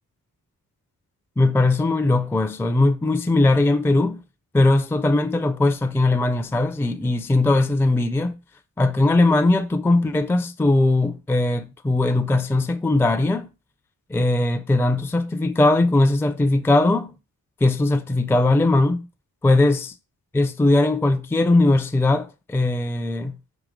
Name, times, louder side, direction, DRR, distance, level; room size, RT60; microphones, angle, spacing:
voice 1, 1.4-4.2 4.5-8.4 8.8-13.5 14.1-17.1 17.6-19.1 19.4-19.9 20.3-23.4, left 2 dB, 5° left, 0.4 m, -19 dB
5.0 x 2.8 x 3.7 m
cardioid pair, 70°, 37 cm